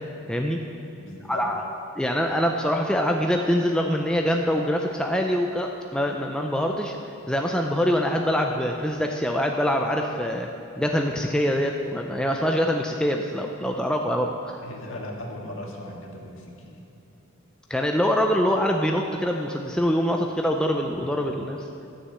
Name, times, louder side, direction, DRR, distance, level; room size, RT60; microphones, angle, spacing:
voice 1, 0.3-0.6 1.3-1.7 2.0-7.0 7.3-10.5 10.8-14.6 17.7-21.7, equal, 5° left, 2 dB, 0.5 m, -24 dB
voice 2, 1.0-1.4 14.6-16.8, left 1 dB, 75° left, 0 dB, 1.8 m, -38 dB
12.5 x 6.5 x 7.6 m, 2.8 s
head